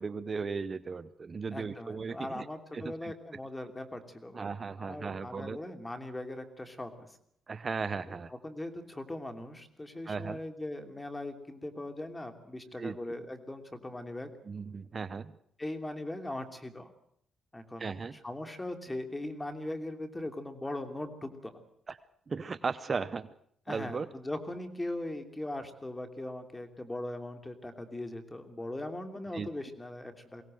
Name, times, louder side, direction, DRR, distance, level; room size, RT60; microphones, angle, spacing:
voice 1, 0.0-2.5 2.7-3.1 4.3-5.6 7.5-8.3 10.1-10.4 12.8-13.0 14.5-15.3 17.8-18.2 21.9-22.0 22.3-23.3 23.7-24.1 29.3-29.5, right 5 dB, 40° right, 13 dB, 0.8 m, -36 dB
voice 2, 1.5-4.5 4.8-7.2 8.1-14.3 15.6-16.9 17.5-21.6 23.7-30.4, left 1 dB, 15° left, 7 dB, 3.0 m, -40 dB
23.0 x 17.5 x 7.7 m, 0.68 s
cardioid pair, 90°, 0 cm